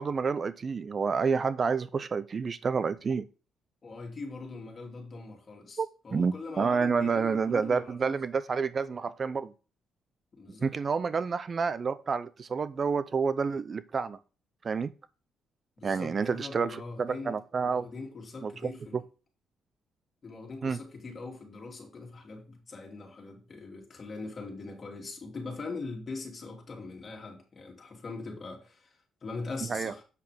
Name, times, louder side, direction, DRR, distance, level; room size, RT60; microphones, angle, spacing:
voice 1, 0.0-3.3 5.8-9.5 10.6-14.2 14.6-14.9 15.8-17.9 18.4-19.0 20.6-20.8 29.7-29.9, right 5 dB, 40° right, 0.5 m, -29 dB
voice 2, 3.8-8.0 10.3-10.7 11.1-11.2 15.8-19.0 20.2-30.0, left 3 dB, 40° left, 2.9 m, -42 dB
8.2 x 6.4 x 3.5 m
cardioid pair, 90°, 0 cm